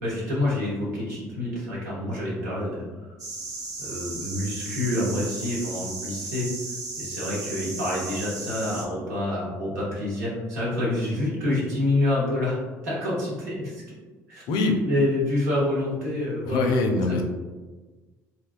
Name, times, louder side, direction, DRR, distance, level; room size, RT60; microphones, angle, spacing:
voice 1, 0.0-2.8 3.8-6.5 7.0-13.8 14.3-14.4 14.8-16.7 17.1-17.2, left 1 dB, 80° right, -6 dB, 0.9 m, -27 dB
sound 1, 3.2-8.8, right 3 dB, 45° right, 0.8 m, -35 dB
voice 2, 14.5-14.8 16.4-17.2, left 3 dB, 60° left, 4 dB, 0.4 m, -23 dB
2.8 x 2.2 x 2.4 m, 1.3 s
hypercardioid pair, 60°, 9 cm